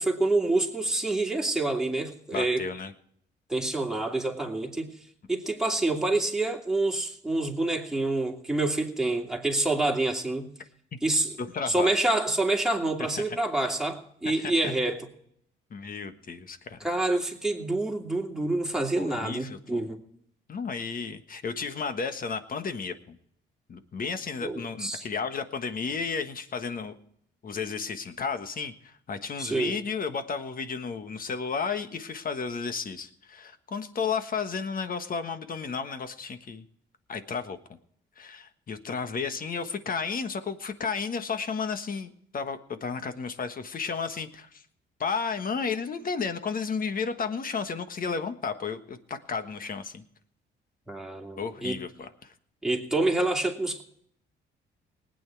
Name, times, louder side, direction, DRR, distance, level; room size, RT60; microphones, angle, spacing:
voice 1, 0.0-2.6 3.5-4.9 5.3-10.5 11.0-11.3 11.7-15.1 16.8-20.0 24.4-25.0 29.4-29.8 50.9-51.8 52.6-53.8, right 2 dB, 5° right, 0 dB, 2.7 m, -27 dB
voice 2, 2.3-2.9 11.5-11.9 13.1-13.4 14.2-14.7 15.7-16.8 19.0-19.8 20.5-23.2 23.7-26.9 27.4-36.6 37.1-37.6 38.2-44.6 45.0-50.0 51.4-52.3, left 5 dB, 45° left, 9 dB, 1.4 m, -33 dB
19.5 x 9.0 x 4.6 m, 0.69 s
cardioid pair, 90°, 20 cm